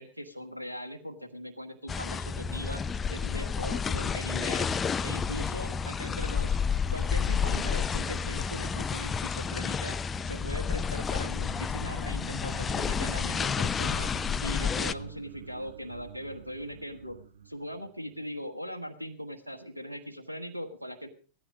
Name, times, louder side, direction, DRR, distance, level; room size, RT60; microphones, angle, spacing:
voice 1, 0.0-2.8 3.1-4.7 5.0-6.5 6.9-10.0 10.2-21.1, equal, 85° right, 7 dB, 1.4 m, -40 dB
sound 1, 1.9-14.9, left 6 dB, 20° left, 0.6 m, -30 dB
sound 2, 9.5-18.4, right 8 dB, 65° right, 1.2 m, -48 dB
16.5 x 13.5 x 5.1 m, 0.38 s
figure-of-eight pair, 90°, 0 cm